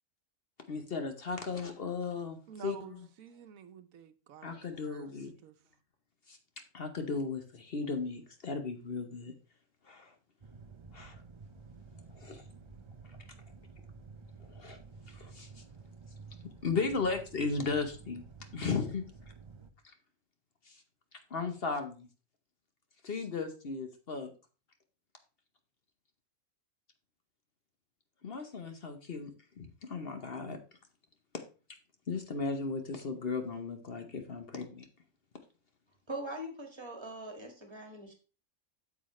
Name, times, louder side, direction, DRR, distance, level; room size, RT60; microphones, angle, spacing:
voice 1, 0.7-3.1 4.4-5.3 6.3-6.4 6.7-9.3 9.9-10.1 10.9-11.2 12.1-12.4 14.5-14.8 15.1-15.6 16.6-18.2 18.5-19.0 20.7-20.8 21.3-22.1 23.0-24.3 28.2-29.3 29.6-30.6 32.1-34.9, left 4 dB, 50° left, 1.0 m, -36 dB
voice 2, 2.5-5.1 5.4-5.5, right 7 dB, 85° right, 1.1 m, -50 dB
sound 1, 10.4-19.7, right 4 dB, 40° right, 0.4 m, -52 dB
voice 3, 36.1-38.1, right 1 dB, 20° right, 1.7 m, -42 dB
8.5 x 7.1 x 3.1 m
omnidirectional pair, 1.4 m